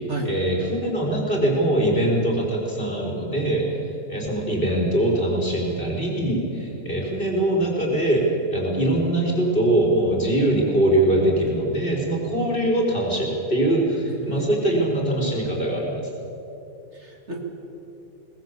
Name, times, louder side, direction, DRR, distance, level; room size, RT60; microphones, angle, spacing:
voice 1, 0.2-3.6 4.1-8.3 8.5-16.0, right 1 dB, 35° left, -2 dB, 4.6 m, -22 dB
voice 2, 14.0-15.0 16.9-17.4, right 2 dB, 45° right, 1 dB, 2.6 m, -33 dB
22.0 x 19.0 x 8.3 m, 2.9 s
omnidirectional pair, 1.7 m